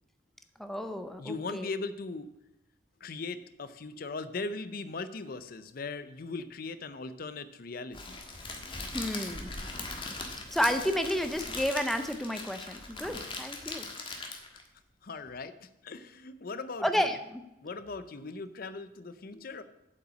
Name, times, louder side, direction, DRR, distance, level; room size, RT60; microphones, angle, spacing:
voice 1, 0.6-1.7 8.9-9.5 10.5-13.9 16.8-17.4, equal, ahead, 7 dB, 0.6 m, -31 dB
voice 2, 1.2-2.3 3.0-8.2 14.1-14.2 15.0-17.1 17.6-19.6, left 3 dB, 50° left, 13 dB, 0.6 m, -39 dB
Crackle, 7.9-14.7, left 3 dB, 25° left, 1.4 m, -40 dB
8.1 x 5.7 x 7.6 m, 0.94 s
head